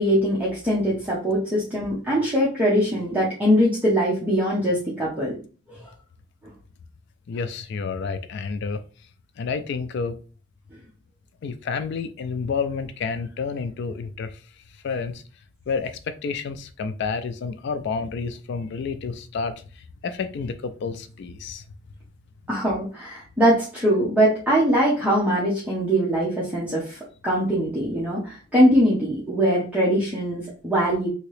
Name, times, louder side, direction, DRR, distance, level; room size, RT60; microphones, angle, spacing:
voice 1, 0.0-5.4 5.7-5.9 22.5-31.1, equal, 10° right, -7 dB, 0.7 m, -22 dB
voice 2, 7.3-8.8 9.4-10.2 11.4-14.4 14.8-15.2 15.7-21.6, left 5 dB, 60° left, 11 dB, 0.3 m, -30 dB
2.9 x 2.8 x 3.1 m, 0.37 s
head